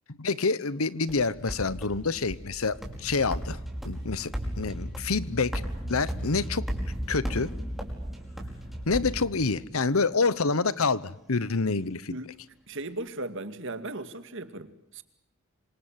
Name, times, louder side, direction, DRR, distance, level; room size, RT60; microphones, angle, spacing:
voice 1, 0.2-3.6 3.8-6.7 7.1-7.5 8.9-12.2, left 4 dB, 85° left, 1.1 m, -27 dB
sound 1, 1.1-9.9, equal, ahead, 5.4 m, -36 dB
sound 2, 3.1-8.8, right 1 dB, 25° left, 3.1 m, -41 dB
voice 2, 12.7-15.0, right 2 dB, 65° right, 2.3 m, -37 dB
26.5 x 26.5 x 7.5 m
head